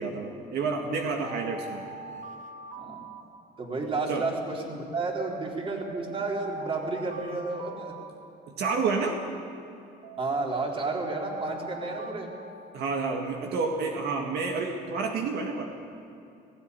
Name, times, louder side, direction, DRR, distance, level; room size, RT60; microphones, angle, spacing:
voice 1, 0.0-1.8 4.1-4.3 8.5-9.2 12.7-15.7, right 4 dB, 75° right, 2 dB, 1.9 m, -29 dB
sound 1, 0.8-4.0 5.2-8.9 10.0-13.3, right 3 dB, 50° right, 1.6 m, -43 dB
voice 2, 2.8-3.1 3.6-8.0 10.2-12.3, right 3 dB, 35° right, 0 dB, 3.7 m, -31 dB
17.5 x 16.0 x 9.6 m, 2.7 s
cardioid pair, 110°, 17 cm